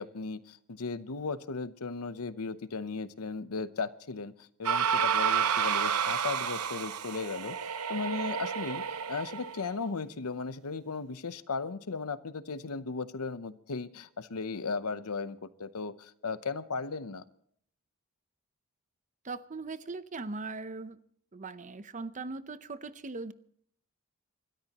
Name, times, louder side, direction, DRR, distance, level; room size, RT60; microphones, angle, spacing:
voice 1, 0.0-7.6 7.9-17.2, left 4 dB, 75° left, 14 dB, 0.8 m, -36 dB
sound 1, 4.6-9.7, right 7 dB, 85° right, 0.8 m, -30 dB
voice 2, 19.2-21.0 21.3-23.3, right 3 dB, 35° right, 13 dB, 0.7 m, -39 dB
30.0 x 13.0 x 3.0 m, 0.63 s
head